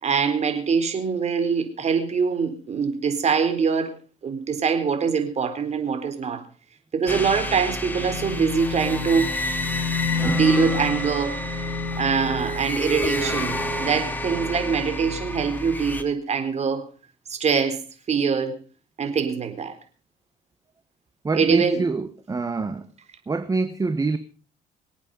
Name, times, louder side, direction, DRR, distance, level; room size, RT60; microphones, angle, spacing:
voice 1, 0.0-3.9 4.2-6.4 6.9-9.3 10.2-11.4 12.0-16.8 17.3-17.8 18.1-18.6 19.0-19.8 21.3-21.8, right 6 dB, 40° right, 4.2 m, -23 dB
sound 1, 7.1-16.0, left 2 dB, 10° left, 2.5 m, -28 dB
voice 2, 21.2-22.9 23.3-24.2, right 3 dB, 20° right, 1.3 m, -25 dB
26.0 x 8.8 x 5.5 m
cardioid pair, 110°, 17 cm